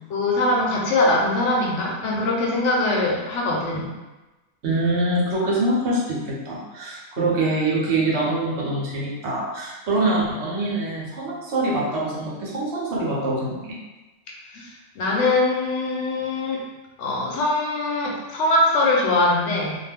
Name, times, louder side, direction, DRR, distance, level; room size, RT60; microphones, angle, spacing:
voice 1, 0.1-3.9 7.2-7.3 14.5-16.6 17.0-19.8, left 2 dB, 80° left, -2 dB, 1.0 m, -22 dB
voice 2, 4.6-13.8, right 2 dB, 70° right, -4 dB, 1.0 m, -24 dB
2.4 x 2.2 x 3.4 m, 1.1 s
omnidirectional pair, 1.2 m